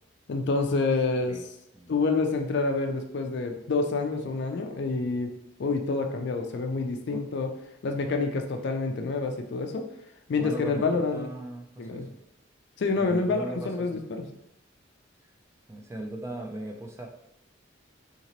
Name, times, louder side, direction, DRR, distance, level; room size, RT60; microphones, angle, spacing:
voice 1, 0.3-1.4 1.9-5.3 5.6-7.5 7.8-9.8 10.3-11.3 11.8-12.1 12.8-14.2, left 3 dB, 60° left, 5 dB, 0.4 m, -27 dB
voice 2, 10.4-12.2 13.0-14.0 15.7-17.1, right 1 dB, 15° right, 1 dB, 0.3 m, -38 dB
2.9 x 2.9 x 2.9 m, 0.80 s
head